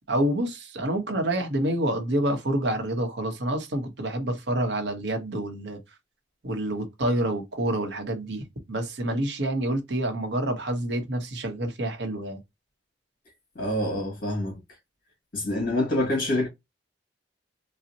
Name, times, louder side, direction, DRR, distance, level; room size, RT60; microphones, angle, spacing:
voice 1, 0.1-5.8 6.4-12.4, right 1 dB, 70° right, 0.8 m, -28 dB
voice 2, 13.6-14.6 15.3-16.5, left 1 dB, 50° left, 1.9 m, -26 dB
3.9 x 2.1 x 2.7 m
head